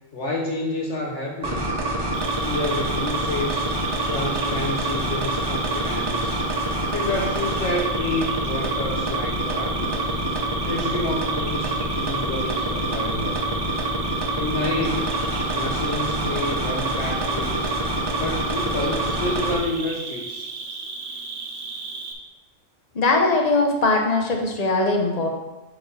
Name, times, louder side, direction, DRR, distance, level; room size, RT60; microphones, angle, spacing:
voice 1, 0.1-1.7 2.4-3.7 4.1-6.4 6.9-10.2 10.6-13.6 14.4-15.2 15.5-17.8 18.2-20.5, left 2 dB, 60° left, 0 dB, 1.0 m, -29 dB
sound 1, 1.4-19.6, right 1 dB, 20° right, 0.8 m, -26 dB
Cricket, 2.1-22.1, right 4 dB, 65° right, 1.0 m, -35 dB
voice 2, 22.9-25.3, left 3 dB, 35° left, 2 dB, 0.8 m, -20 dB
7.9 x 3.0 x 5.4 m, 1.1 s
omnidirectional pair, 1.4 m